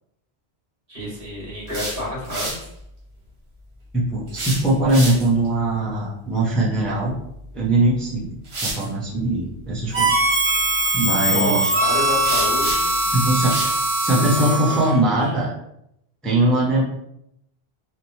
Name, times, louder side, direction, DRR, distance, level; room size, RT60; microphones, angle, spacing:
voice 1, 0.9-2.5 11.3-13.0 14.3-15.3, equal, 60° right, -5 dB, 1.5 m, -29 dB
sound 1, 1.5-2.7 4.3-5.5 7.5-7.7 8.4-8.9 12.2-13.0 13.5-13.8, right 2 dB, 85° right, 1.2 m, -29 dB
voice 2, 3.9-7.1 7.5-8.3 8.6-10.1 10.9-11.7 13.1-13.5 14.0-15.5 16.2-16.8, right 1 dB, ahead, -6 dB, 0.5 m, -21 dB
Harmonica, 9.9-15.0, right 1 dB, 30° right, 1.4 m, -21 dB
3.0 x 2.1 x 2.7 m, 0.78 s
omnidirectional pair, 1.1 m